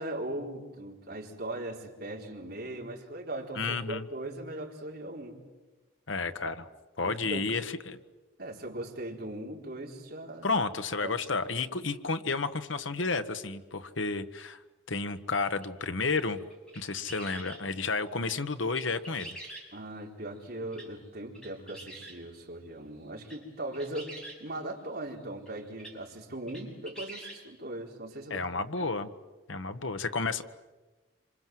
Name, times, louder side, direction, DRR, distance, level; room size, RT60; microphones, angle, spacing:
voice 1, 0.0-5.4 6.4-6.5 7.0-7.5 8.4-10.5 11.0-11.1 19.7-28.4 28.8-28.9, right 1 dB, 50° right, 0 dB, 4.3 m, -39 dB
voice 2, 3.5-4.1 6.1-6.6 7.0-8.0 10.4-14.6 14.9-16.4 16.7-19.4 28.3-29.1 29.5-30.4, left 4 dB, 75° left, 10 dB, 1.4 m, -31 dB
sound 1, 15.6-15.7 16.2-17.6 18.2-18.4 18.7-20.0 20.7-20.9 21.3-22.2 23.0-23.4 23.7-24.4 25.5-25.6 25.8-26.0 26.5-27.4, right 1 dB, 5° left, 6.0 m, -45 dB
27.5 x 26.5 x 7.8 m, 1.2 s
head